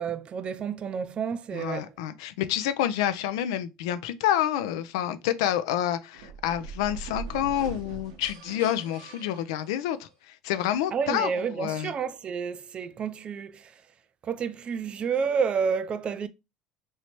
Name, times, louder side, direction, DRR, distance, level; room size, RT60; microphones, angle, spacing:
voice 1, 0.0-1.9 10.9-13.7 14.2-16.3, right 6 dB, 40° right, 0.4 m, -30 dB
voice 2, 1.5-11.9, left 11 dB, 80° left, 0.4 m, -28 dB
sound 1, 6.1-10.1, right 4 dB, 85° right, 0.8 m, -41 dB
3.2 x 2.7 x 2.9 m
supercardioid pair, 85°, 3 cm